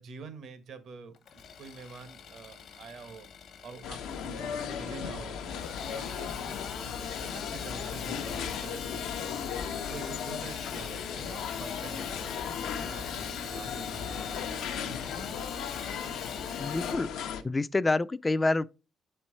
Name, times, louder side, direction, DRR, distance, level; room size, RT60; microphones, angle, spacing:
voice 1, 0.0-3.3 3.6-5.4 5.8-9.5 9.9-12.3 12.7-15.4 15.7-16.1, right 4 dB, 70° right, 1.1 m, -47 dB
Engine starting / Sawing, 1.1-17.0, left 7 dB, 70° left, 1.0 m, -42 dB
sound 1, 3.8-17.4, left 7 dB, 90° left, 0.7 m, -36 dB
voice 2, 16.6-17.1 17.4-18.7, left 2 dB, 20° left, 0.3 m, -27 dB
7.2 x 4.5 x 4.2 m
cardioid pair, 90°, 0 cm